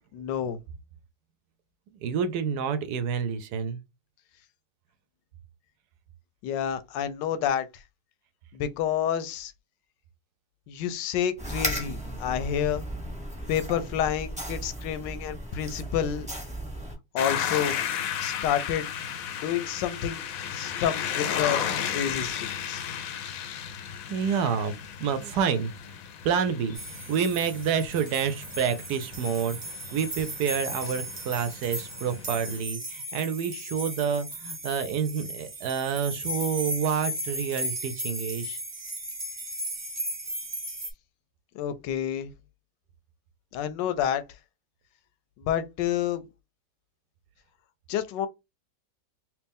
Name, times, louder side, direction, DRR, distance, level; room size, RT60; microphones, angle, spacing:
voice 1, 0.1-0.6 6.4-7.7 8.5-9.5 10.7-12.9 13.5-16.3 17.1-17.8 18.2-18.9 19.4-20.2 20.5-21.6 21.9-22.8 41.5-42.3 43.5-44.2 45.4-46.2 47.9-48.3, left 9 dB, 85° left, 1.2 m, -29 dB
voice 2, 2.0-3.8 24.1-25.7 26.2-29.6 29.9-38.6, right 7 dB, 75° right, 1.0 m, -28 dB
sound 1, 11.4-17.0, right 1 dB, 5° right, 0.9 m, -35 dB
sound 2, 17.2-32.6, left 8 dB, 65° left, 0.9 m, -34 dB
sound 3, 26.7-40.9, equal, 35° right, 0.5 m, -36 dB
3.0 x 3.0 x 3.5 m
omnidirectional pair, 1.9 m